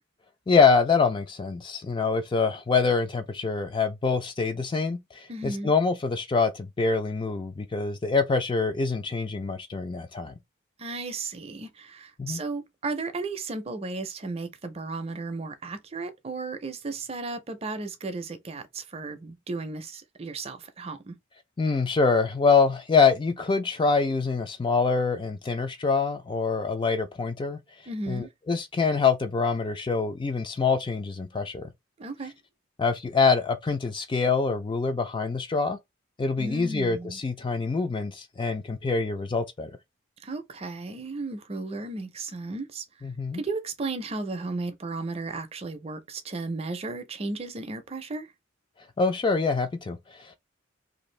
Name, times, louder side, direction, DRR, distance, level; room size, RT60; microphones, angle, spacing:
voice 1, 0.5-10.3 12.2-12.4 21.6-27.6 28.1-31.7 32.8-35.8 36.2-39.7 43.0-43.4 49.0-50.4, left 4 dB, 25° left, 0.3 m, -25 dB
voice 2, 5.3-5.7 10.8-21.2 27.9-28.3 32.0-32.3 36.4-37.2 40.2-42.9 43.3-48.3, right 3 dB, 30° right, 0.5 m, -34 dB
2.6 x 2.4 x 3.1 m
head